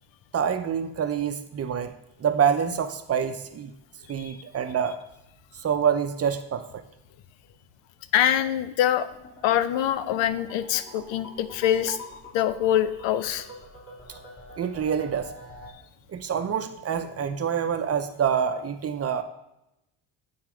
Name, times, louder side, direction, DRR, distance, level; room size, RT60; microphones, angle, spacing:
voice 1, 0.3-1.9 2.2-3.7 4.1-5.0 5.5-6.8 11.9-12.0 14.6-15.3 16.1-19.2, right 7 dB, 35° right, 9 dB, 0.6 m, -26 dB
voice 2, 8.1-9.1 9.4-12.0 12.3-13.5, left 11 dB, 80° left, 13 dB, 0.7 m, -24 dB
sound 1, 9.0-15.7, left 1 dB, 30° left, 2.2 m, -46 dB
9.3 x 4.2 x 4.9 m, 0.86 s
cardioid pair, 120°, 44 cm